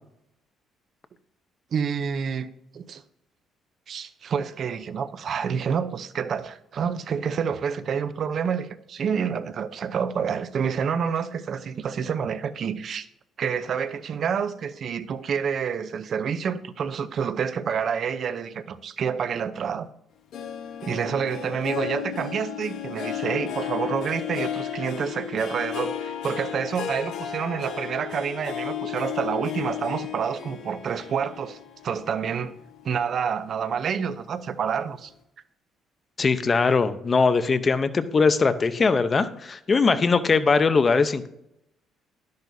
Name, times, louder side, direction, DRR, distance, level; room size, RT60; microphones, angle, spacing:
voice 1, 1.7-2.5 2.7-3.0 3.9-13.1 13.4-19.9 20.8-31.6 31.8-32.5 32.8-35.1, right 7 dB, 50° right, 0.7 m, -28 dB
Harp, 20.3-33.0 33.5-33.9 34.3-34.4, left 10 dB, 70° left, 1.3 m, -34 dB
voice 2, 36.2-41.3, left 4 dB, 30° left, 0.8 m, -21 dB
12.0 x 10.5 x 2.7 m
cardioid pair, 105°, 0 cm